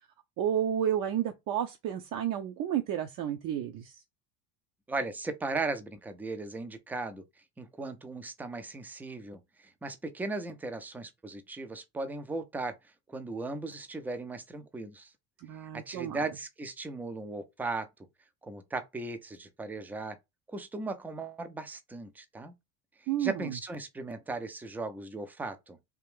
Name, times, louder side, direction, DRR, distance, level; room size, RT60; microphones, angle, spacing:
voice 1, 0.4-4.0 15.4-16.2 23.1-23.5, right 10 dB, 50° right, 0.6 m, -31 dB
voice 2, 4.9-7.2 7.6-12.8 13.1-15.1 15.6-17.9 18.4-20.2 20.5-22.5 23.2-25.8, right 3 dB, 5° right, 0.3 m, -37 dB
3.4 x 2.4 x 3.4 m
supercardioid pair, 100°, 44 cm